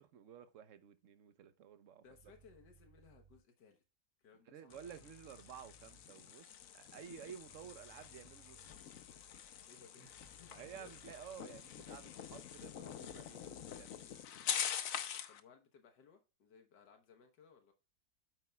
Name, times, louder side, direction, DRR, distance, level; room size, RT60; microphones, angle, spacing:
voice 1, 0.0-2.0 4.5-8.6 10.5-13.9, right 8 dB, 55° right, 1.1 m, -53 dB
voice 2, 2.0-3.8 4.2-4.8 9.7-10.9 15.3-17.7, left 6 dB, 85° left, 1.7 m, -62 dB
sound 1, 2.0-3.4 4.7-6.0 7.4-8.7 10.0-11.4, right 2 dB, 80° right, 3.4 m, -65 dB
sound 2, 4.7-15.4, left 9 dB, 60° left, 1.1 m, -45 dB
9.0 x 8.2 x 2.3 m
omnidirectional pair, 1.8 m